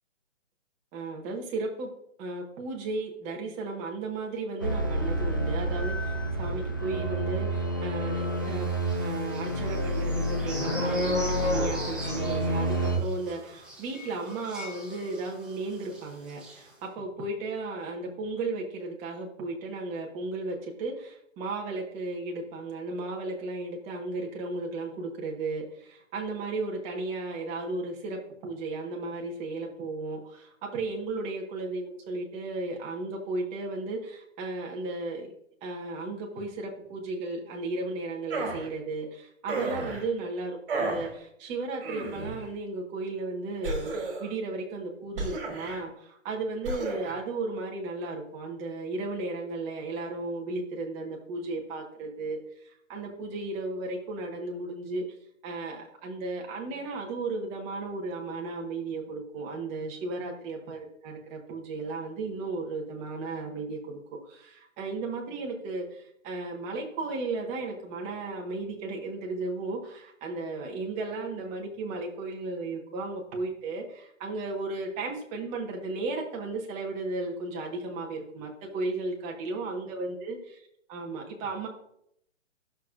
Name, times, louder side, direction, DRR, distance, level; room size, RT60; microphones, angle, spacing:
voice 1, 0.9-1.9 2.2-8.7 9.0-35.3 35.6-55.0 55.4-64.0 64.3-80.4 80.9-81.7, right 3 dB, 15° right, 1 dB, 1.2 m, -35 dB
sound 1, 4.6-13.0, right 1 dB, 20° left, 0.3 m, -29 dB
sound 2, 8.8-15.5 15.8-16.0 16.3-16.6, left 1 dB, ahead, 0.8 m, -35 dB
Voice Male Grunt Mono, 38.3-38.7 39.5-40.0 40.7-41.1 41.8-42.4 43.6-44.3 45.2-45.8 46.6-47.1, right 2 dB, 45° right, 2.3 m, -33 dB
12.0 x 6.4 x 2.5 m, 0.73 s
figure-of-eight pair, 140°, 38 cm